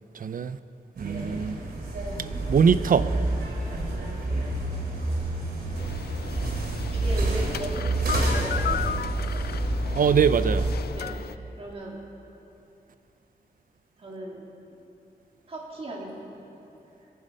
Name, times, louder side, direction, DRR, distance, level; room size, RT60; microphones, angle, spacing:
voice 1, 0.1-0.6 1.0-1.6 2.5-3.1 9.9-10.7, right 6 dB, 60° right, 0.5 m, -22 dB
sound 1, 1.0-10.7, right 2 dB, 80° right, 2.9 m, -28 dB
sound 2, 5.8-11.3, left 8 dB, 75° left, 0.4 m, -35 dB
voice 2, 6.9-9.4 10.9-11.1 11.6-12.0 14.0-14.5 15.5-16.4, right 1 dB, 35° right, 2.9 m, -37 dB
22.0 x 10.5 x 5.4 m
wide cardioid pair, 170°, 16 cm